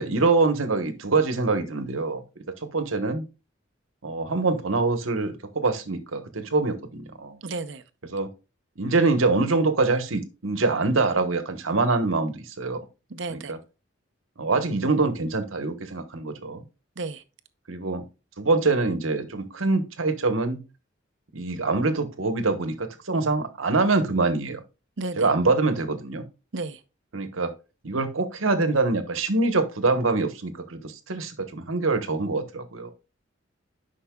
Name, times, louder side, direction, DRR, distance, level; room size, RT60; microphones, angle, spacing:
voice 1, 0.0-2.2 2.6-3.2 4.0-7.4 8.0-8.3 8.8-12.8 13.3-13.6 14.4-16.6 17.7-18.0 18.4-20.6 21.3-24.6 25.2-26.2 27.1-27.5 27.8-32.9, right 3 dB, 85° right, 1.1 m, -24 dB
voice 2, 7.4-7.8 13.1-13.5 17.0-17.2 25.0-25.3 26.5-26.8, right 3 dB, 65° right, 0.7 m, -32 dB
10.5 x 5.5 x 2.3 m
head